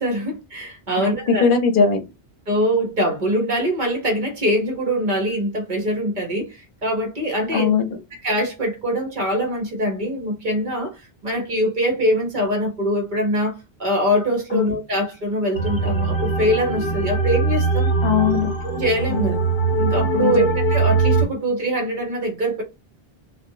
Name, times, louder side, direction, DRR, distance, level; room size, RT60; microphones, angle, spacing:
voice 1, 0.0-1.5 2.5-7.7 8.2-10.9 11.2-17.9 18.6-19.4 19.8-22.6, equal, 50° right, 1.0 m, -23 dB
voice 2, 1.0-2.0 7.5-7.9 14.5-14.6 18.0-18.5 19.1-19.3 20.1-20.4, left 5 dB, 60° left, 0.8 m, -19 dB
sound 1, 15.5-21.2, right 3 dB, 30° left, 0.8 m, -21 dB
2.6 x 2.1 x 2.6 m
omnidirectional pair, 1.1 m